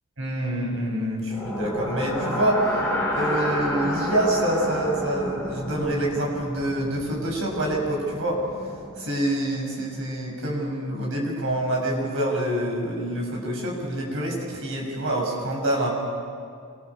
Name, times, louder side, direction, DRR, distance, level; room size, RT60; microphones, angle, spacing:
voice 1, 0.2-2.7 3.1-8.4 9.0-15.9, right 1 dB, 65° right, 0 dB, 5.9 m, -26 dB
sound 1, 1.3-9.3, left 1 dB, 10° left, 5.4 m, -30 dB
26.5 x 20.0 x 6.9 m, 2.2 s
head